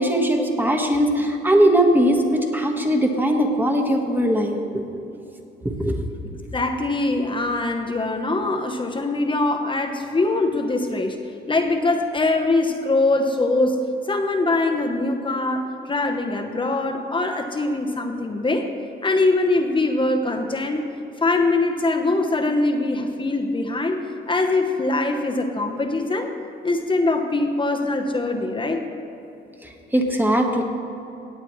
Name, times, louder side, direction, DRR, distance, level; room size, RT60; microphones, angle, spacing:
voice 1, 0.0-4.6 4.9-5.0 5.6-6.0 29.9-30.6, right 1 dB, 10° right, 3 dB, 1.4 m, -20 dB
voice 2, 6.5-11.2 11.5-18.7 19.0-20.8 21.2-24.0 24.3-26.3 26.6-28.9, left 2 dB, 25° left, 4 dB, 1.0 m, -22 dB
17.0 x 8.7 x 3.2 m, 2.9 s
cardioid pair, 90°, 20 cm